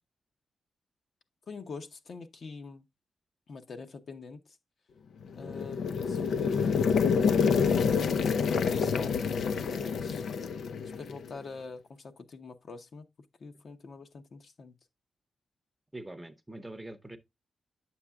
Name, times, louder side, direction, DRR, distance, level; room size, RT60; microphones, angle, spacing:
voice 1, 1.5-2.8 3.5-4.6 5.3-7.1 8.3-10.2 11.0-13.1 13.4-14.8, left 4 dB, 55° left, 0.9 m, -45 dB
sound 1, 5.3-11.3, left 6 dB, 80° left, 0.5 m, -27 dB
voice 2, 15.9-17.2, right 1 dB, 10° right, 0.7 m, -44 dB
8.8 x 7.2 x 2.3 m
wide cardioid pair, 125°, 0 cm